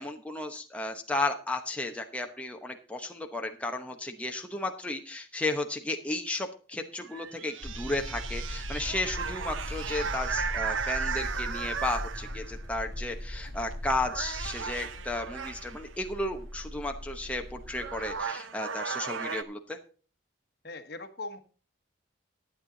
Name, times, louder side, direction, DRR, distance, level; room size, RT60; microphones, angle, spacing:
voice 1, 0.0-19.8, left 2 dB, 5° left, 3 dB, 0.9 m, -34 dB
sound 1, 7.0-12.6 13.5-13.7 14.0-15.9 17.3-17.4 17.7-19.4, right 6 dB, 90° right, 0.8 m, -36 dB
sound 2, 7.6-18.2, left 1 dB, 20° right, 2.4 m, -39 dB
voice 2, 20.6-21.4, left 2 dB, 55° left, 9 dB, 1.3 m, -40 dB
12.0 x 8.8 x 3.9 m, 0.38 s
head